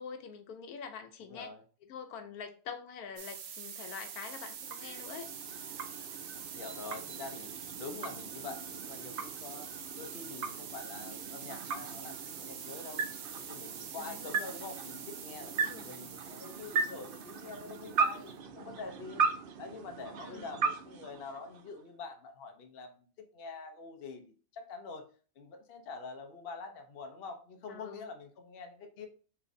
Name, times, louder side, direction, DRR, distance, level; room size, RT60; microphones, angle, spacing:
voice 1, 0.0-1.5 1.9-5.3 14.0-14.4 15.6-15.9 20.2-20.5 27.7-28.1, left 6 dB, 90° left, 7 dB, 1.2 m, -45 dB
voice 2, 1.2-1.6 6.5-13.1 13.5-19.3 19.6-25.1 25.4-29.1, left 4 dB, 50° left, 5 dB, 0.8 m, -46 dB
sound 1, 3.2-18.3, right 7 dB, 70° right, 1.1 m, -45 dB
sound 2, 4.1-21.9, right 5 dB, 90° right, 0.4 m, -38 dB
5.7 x 3.2 x 2.6 m, 0.40 s
omnidirectional pair, 1.5 m